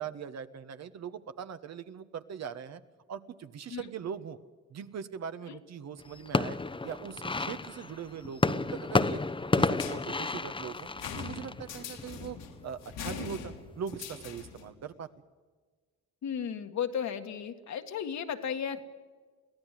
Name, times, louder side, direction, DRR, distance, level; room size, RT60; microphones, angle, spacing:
voice 1, 0.0-2.8 3.1-4.4 4.7-6.6 6.8-9.2 9.5-10.9 11.2-12.4 12.6-15.1, right 7 dB, 60° right, 10 dB, 1.4 m, -41 dB
sound 1, 6.0-12.5 13.0-13.6 13.9-14.5, left 3 dB, 15° left, 0.9 m, -31 dB
sound 2, 9.7-14.7, left 6 dB, 90° left, 3.2 m, -42 dB
voice 2, 16.2-18.8, left 8 dB, 65° left, 6 dB, 1.9 m, -34 dB
23.5 x 16.5 x 7.6 m, 1.4 s
cardioid pair, 90°, 30 cm